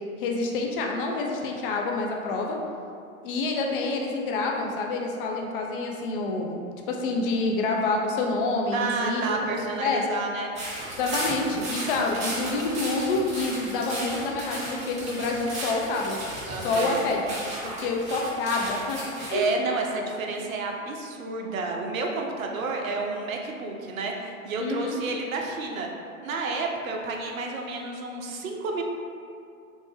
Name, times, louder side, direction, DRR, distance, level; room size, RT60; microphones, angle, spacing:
voice 1, 0.2-2.6 3.2-9.4 9.8-10.0 11.0-16.3 16.6-17.3 17.6-19.0 19.3-19.5 24.6-25.0, left 3 dB, 40° left, 0 dB, 0.4 m, -27 dB
voice 2, 8.7-10.5 16.5-17.1 19.3-25.9 26.2-28.8, right 3 dB, 75° right, 1 dB, 0.6 m, -30 dB
sound 1, 10.6-19.3, right 1 dB, 15° right, 0.7 m, -35 dB
3.2 x 2.1 x 3.1 m, 2.4 s
figure-of-eight pair, 110°, 41 cm